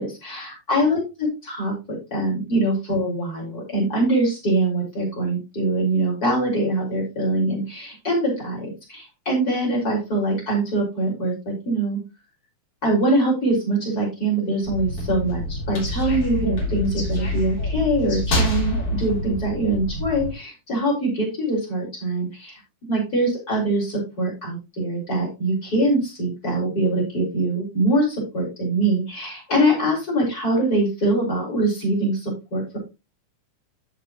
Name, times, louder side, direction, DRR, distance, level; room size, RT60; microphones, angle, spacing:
voice 1, 0.0-12.0 12.8-22.6 22.9-32.8, right 1 dB, 25° left, -1 dB, 6.0 m, -23 dB
sound 1, 14.6-20.3, left 1 dB, 40° left, 4.2 m, -26 dB
14.5 x 5.4 x 3.1 m, 0.26 s
omnidirectional pair, 4.2 m